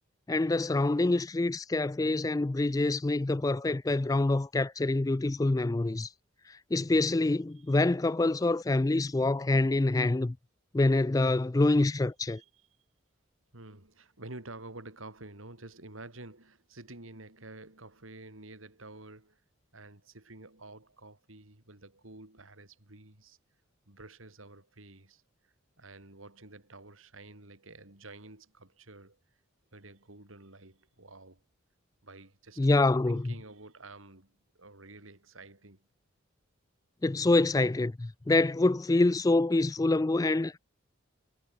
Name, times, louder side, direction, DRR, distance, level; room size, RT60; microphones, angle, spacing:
voice 1, 0.3-6.1 6.5-10.4 10.7-12.4 32.6-33.3 37.0-40.6, left 2 dB, 15° left, 0.3 m, -26 dB
voice 2, 12.3-12.7 13.5-19.4 19.7-23.4 23.9-29.2 29.7-31.4 32.0-35.9, right 2 dB, 80° right, 3.8 m, -50 dB
head